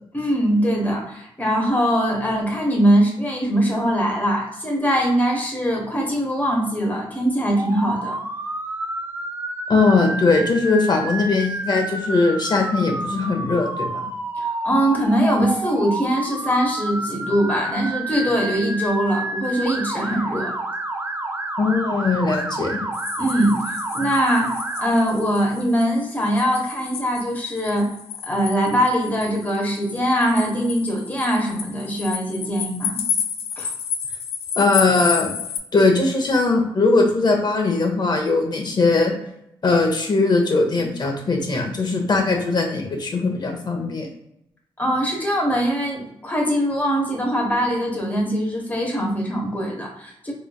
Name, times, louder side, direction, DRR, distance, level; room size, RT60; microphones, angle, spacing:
voice 1, 0.1-8.2 14.4-20.5 23.2-23.6 23.9-27.9 28.2-33.0 33.6-33.7 44.8-50.3, equal, 15° left, -1 dB, 1.1 m, -22 dB
Motor vehicle (road) / Siren, 7.6-24.9, right 2 dB, 25° right, 0.5 m, -29 dB
voice 2, 9.7-13.9 21.6-22.8 34.6-35.3 35.7-39.1 39.6-44.1, left 3 dB, 45° left, 2 dB, 1.0 m, -20 dB
sound 1, 22.9-35.6, left 7 dB, 90° left, 0.4 m, -31 dB
3.8 x 3.2 x 2.3 m, 0.78 s
cardioid pair, 70°, 10 cm